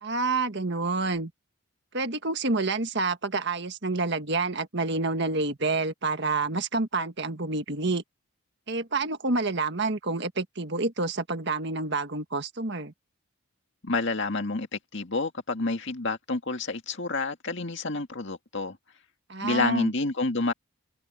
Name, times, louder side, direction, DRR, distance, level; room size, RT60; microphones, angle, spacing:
voice 1, 0.0-1.3 1.9-8.0 8.7-12.9 19.3-19.9, right 3 dB, 50° right, 1.7 m, -28 dB
voice 2, 13.8-18.8 19.4-20.5, left 3 dB, 55° left, 2.1 m, -29 dB
head